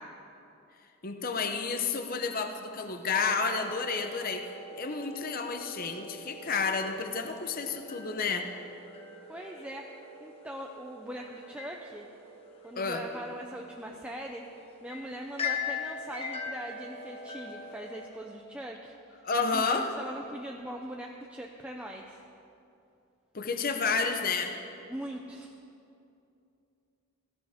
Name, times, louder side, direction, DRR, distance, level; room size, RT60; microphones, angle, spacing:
voice 1, 1.0-8.5 12.8-13.0 19.2-19.9 23.3-24.6, left 4 dB, 45° left, 5 dB, 0.8 m, -31 dB
sound 1, 3.1-18.1, left 4 dB, 30° left, 1.2 m, -42 dB
voice 2, 9.3-9.9 10.2-12.1 12.6-14.4 14.8-18.9 19.5-22.2 24.9-25.5, right 1 dB, 5° right, 0 dB, 0.6 m, -41 dB
17.0 x 15.5 x 3.6 m, 2.7 s
head